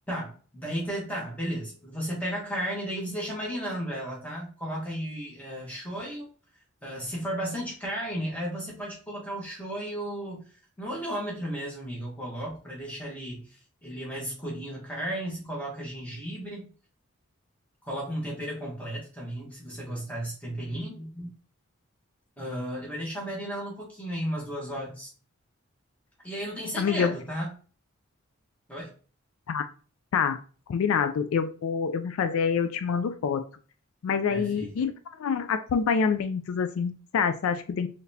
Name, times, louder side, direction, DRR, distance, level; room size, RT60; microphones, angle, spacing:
voice 1, 0.1-6.3 6.8-10.5 10.8-16.7 17.8-21.3 22.4-25.1 26.2-27.5 28.7-28.9 34.3-34.7, equal, 5° left, 1.2 m, -34 dB
voice 2, 26.8-27.1 29.5-29.7 30.1-30.4 30.7-33.4 34.0-34.9 35.2-37.9, left 6 dB, 75° left, 0.3 m, -26 dB
4.0 x 3.3 x 2.7 m
head